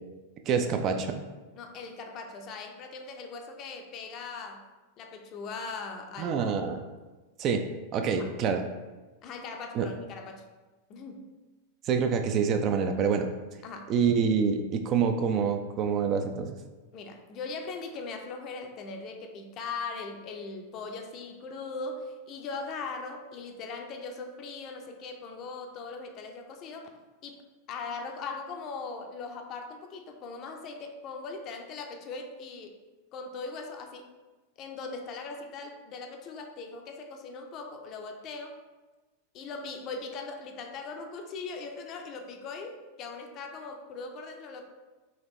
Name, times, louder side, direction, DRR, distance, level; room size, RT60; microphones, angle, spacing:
voice 1, 0.5-1.2 6.2-6.8 7.4-7.6 7.9-8.6 9.7-9.9 11.8-13.3 13.9-16.6, right 6 dB, 35° right, 6 dB, 0.3 m, -26 dB
voice 2, 1.5-4.6 5.0-6.4 8.2-8.3 9.2-10.4 10.9-11.3 13.6-13.9 16.9-26.9 27.2-32.8 33.1-34.1 34.6-38.6 39.3-44.6, left 4 dB, 35° left, 4 dB, 0.5 m, -40 dB
4.1 x 2.9 x 3.1 m, 1.2 s
figure-of-eight pair, 90°, 0 cm